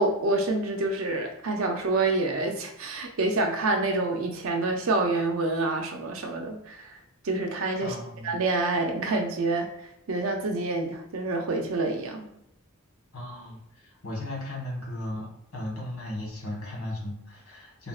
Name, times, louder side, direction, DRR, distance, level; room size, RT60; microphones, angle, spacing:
voice 1, 0.0-7.0 7.2-7.9 8.2-9.7 10.1-12.3, right 2 dB, 65° right, 3 dB, 0.5 m, -27 dB
voice 2, 7.8-8.3 13.1-17.9, left 1 dB, 85° left, -2 dB, 1.1 m, -36 dB
3.6 x 2.1 x 2.3 m, 0.79 s
head